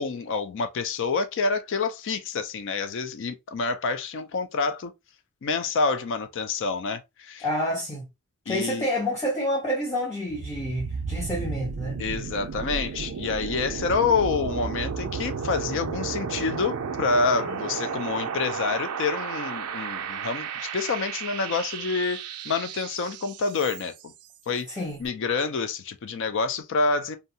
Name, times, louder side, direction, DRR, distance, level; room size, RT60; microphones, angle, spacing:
voice 1, 0.0-4.9 5.4-7.5 8.5-8.9 12.0-24.1 24.5-24.7 25.0-27.2, left 4 dB, 60° left, 0.4 m, -27 dB
voice 2, 7.4-8.1 8.5-12.0 24.8-25.0, equal, 15° left, 0.6 m, -28 dB
sound 1, 10.3-24.1, right 6 dB, 80° right, 0.4 m, -33 dB
2.6 x 2.3 x 2.7 m
head